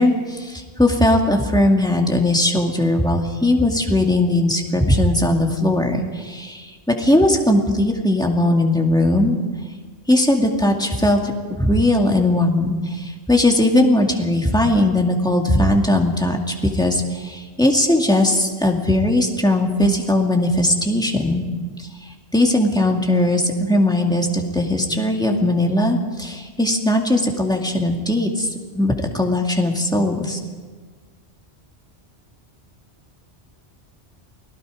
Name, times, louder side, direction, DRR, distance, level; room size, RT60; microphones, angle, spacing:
voice 1, 0.0-9.4 10.1-16.4 16.7-21.4 22.3-28.5 28.7-30.4, left 1 dB, 5° left, 1 dB, 2.2 m, -19 dB
29.5 x 18.0 x 5.0 m, 1.5 s
omnidirectional pair, 1.1 m